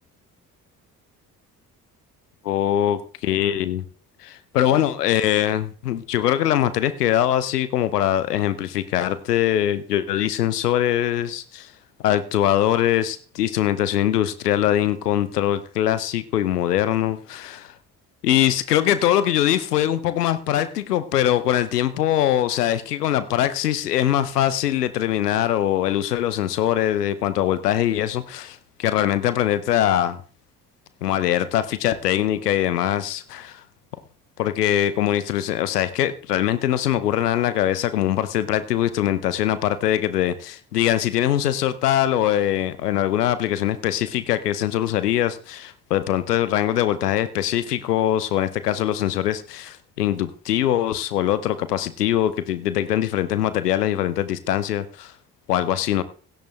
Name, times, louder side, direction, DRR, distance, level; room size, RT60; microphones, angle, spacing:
voice 1, 2.4-3.8 4.2-11.7 12.0-17.7 18.2-30.2 31.0-33.6 34.4-55.1 55.5-56.0, left 11 dB, 80° left, 14 dB, 0.8 m, -22 dB
16.5 x 10.0 x 3.3 m, 0.39 s
figure-of-eight pair, 40°, 47 cm